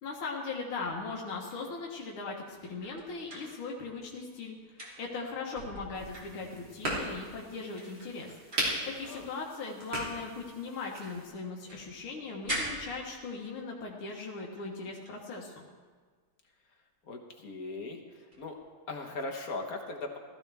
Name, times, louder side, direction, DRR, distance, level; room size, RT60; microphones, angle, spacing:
voice 1, 0.0-8.3 8.8-15.7, left 4 dB, 80° left, -2 dB, 2.1 m, -39 dB
sound 1, 0.8-4.2 4.5-6.9 7.4-7.5 7.7-11.1 11.4-13.6 14.3-14.7 15.0-15.2 18.3-18.5, right 1 dB, 35° right, 2.6 m, -44 dB
sound 2, 5.9-11.3, right 1 dB, 60° right, 3.9 m, -38 dB
voice 2, 17.1-18.6 18.9-20.2, left 2 dB, 50° left, 2 dB, 1.4 m, -39 dB
16.0 x 14.0 x 3.4 m, 1.5 s
omnidirectional pair, 2.3 m